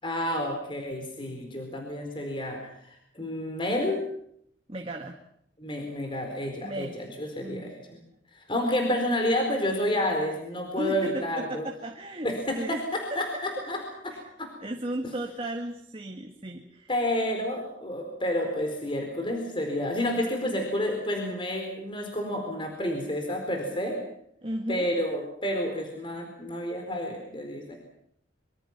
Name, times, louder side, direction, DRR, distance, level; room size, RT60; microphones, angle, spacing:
voice 1, 0.0-4.0 5.6-8.0 8.3-11.6 12.2-13.8 14.0-14.5 16.9-24.0 24.7-27.8, left 1 dB, 30° left, 3 dB, 4.4 m, -30 dB
voice 2, 4.7-5.2 6.6-7.0 7.4-7.7 10.8-12.3 12.6-12.8 13.3-13.4 14.1-14.2 14.6-16.9 24.4-24.9, right 1 dB, 30° right, 3 dB, 1.9 m, -35 dB
25.5 x 25.0 x 6.1 m, 0.71 s
head